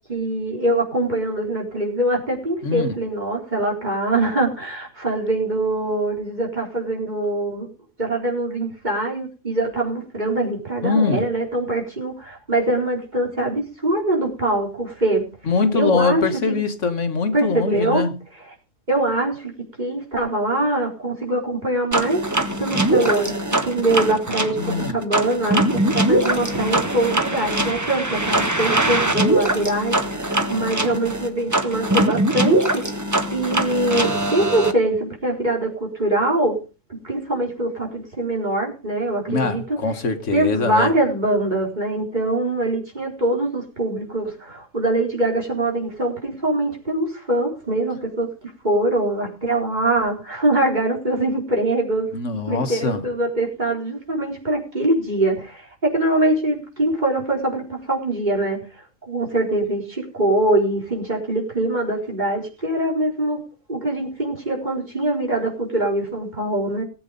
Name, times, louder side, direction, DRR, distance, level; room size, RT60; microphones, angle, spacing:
voice 1, 0.1-7.7 8.0-15.2 15.7-16.5 17.3-18.0 18.9-19.5 19.8-22.2 22.6-23.4 23.6-32.8 33.3-36.6 36.9-39.6 40.3-48.3 48.6-52.1 52.5-58.6 59.1-63.4 63.7-66.8, right 2 dB, 35° right, 4.6 m, -23 dB
voice 2, 2.6-3.0 10.8-11.3 15.5-18.2 24.5-25.0 39.3-40.9 52.1-53.0, left 4 dB, 70° left, 1.7 m, -23 dB
sound 1, 21.9-34.7, right 1 dB, 15° right, 1.2 m, -22 dB
19.0 x 8.3 x 5.3 m
omnidirectional pair, 1.3 m